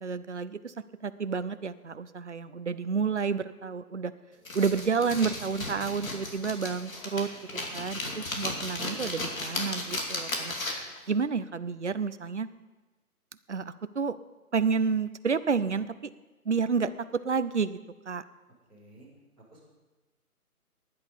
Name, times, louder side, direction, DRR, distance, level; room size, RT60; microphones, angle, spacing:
voice 1, 0.0-0.7 1.0-4.1 4.5-7.3 7.7-10.5 11.1-12.5 13.5-14.2 14.5-16.1 16.5-17.8 18.1-18.2, right 5 dB, 50° right, 13 dB, 0.6 m, -30 dB
sound 1, 4.5-11.0, left 2 dB, 60° left, 2.7 m, -35 dB
voice 2, 7.5-7.8 18.7-19.1 19.5-19.6, right 2 dB, ahead, -13 dB, 2.3 m, -54 dB
15.5 x 10.5 x 5.3 m, 1.2 s
hypercardioid pair, 175°, 46 cm